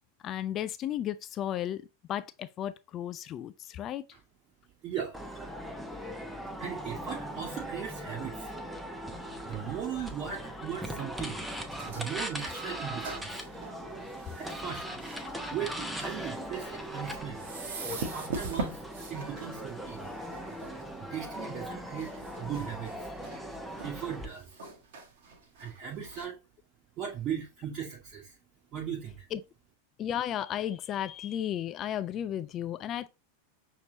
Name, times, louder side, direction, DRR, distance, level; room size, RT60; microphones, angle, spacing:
voice 1, 0.2-1.8 2.1-4.0 29.3-29.4 30.0-33.1, left 11 dB, 30° left, 0.3 m, -34 dB
voice 2, 4.8-5.4 6.6-8.6 9.1-11.5 11.9-13.4 14.3-14.9 15.5-17.5 17.8-20.1 21.0-22.1 22.4-23.1 23.8-24.6 25.6-26.4 27.0-28.4 28.7-29.3, right 8 dB, 35° right, 1.1 m, -38 dB
sound 1, 5.1-24.2, equal, 5° right, 0.8 m, -39 dB
sound 2, 11.5-26.3, right 3 dB, 55° right, 1.2 m, -43 dB
6.5 x 3.1 x 2.7 m
figure-of-eight pair, 90°, 0 cm